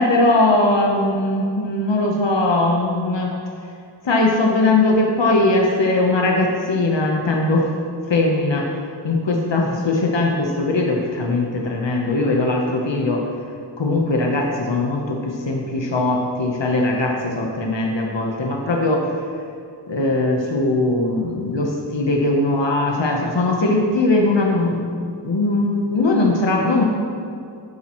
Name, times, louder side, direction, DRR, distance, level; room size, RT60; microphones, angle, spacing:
voice 1, 0.0-3.3 4.0-7.7 8.1-8.7 9.0-13.2 13.8-19.1 19.9-24.9 25.2-26.8, left 2 dB, 75° left, 0 dB, 1.1 m, -20 dB
12.0 x 7.3 x 3.1 m, 2.4 s
wide cardioid pair, 55°, 44 cm